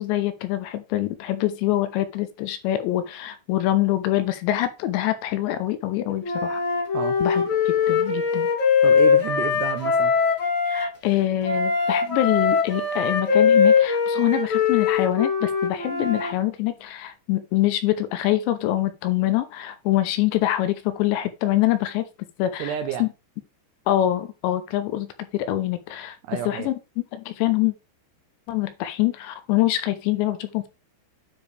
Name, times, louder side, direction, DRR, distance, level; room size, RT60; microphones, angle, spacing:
voice 1, 0.0-6.6 7.2-8.5 10.7-22.1 22.4-22.7 23.0-23.1 23.9-26.2 26.5-26.7 27.1-27.7 28.5-30.7, left 14 dB, 80° left, 2.9 m, -24 dB
Wind instrument woodwind instrument, 6.2-10.9 11.4-16.3, left 6 dB, 45° left, 1.6 m, -21 dB
voice 2, 8.8-10.2 22.6-23.0 26.2-26.7, right 10 dB, 80° right, 2.5 m, -30 dB
9.8 x 4.8 x 3.3 m
omnidirectional pair, 5.3 m